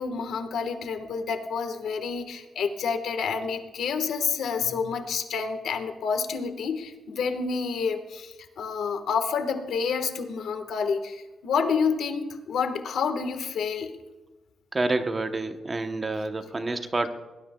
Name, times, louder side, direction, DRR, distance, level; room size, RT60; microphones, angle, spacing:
voice 1, 0.0-14.0, left 5 dB, 75° left, 7 dB, 1.4 m, -29 dB
voice 2, 14.7-17.1, right 2 dB, 20° right, 7 dB, 0.8 m, -28 dB
21.0 x 18.5 x 2.3 m, 1.1 s
wide cardioid pair, 165°, 0 cm